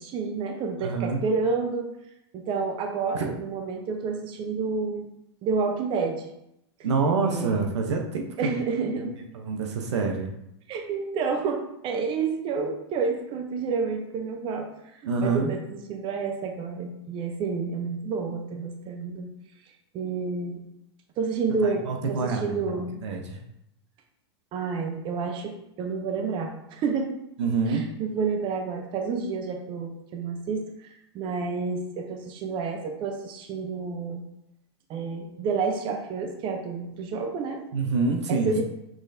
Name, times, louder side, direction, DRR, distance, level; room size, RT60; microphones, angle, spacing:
voice 1, 0.0-1.9 2.3-5.1 5.4-6.3 7.2-7.7 8.4-9.1 10.7-14.7 15.2-15.6 15.9-19.3 19.9-20.6 21.2-22.9 24.5-25.5 25.8-27.1 27.7-30.7 31.1-34.2 34.9-37.6 38.3-38.6, right 5 dB, 35° right, 4 dB, 0.7 m, -29 dB
voice 2, 0.8-1.2 3.1-3.3 6.8-8.5 9.3-10.3 15.0-15.5 21.6-23.4 27.4-27.8 37.7-38.6, right 4 dB, 80° right, 3 dB, 0.8 m, -26 dB
6.1 x 3.2 x 2.7 m, 0.81 s
hypercardioid pair, 120°, 15 cm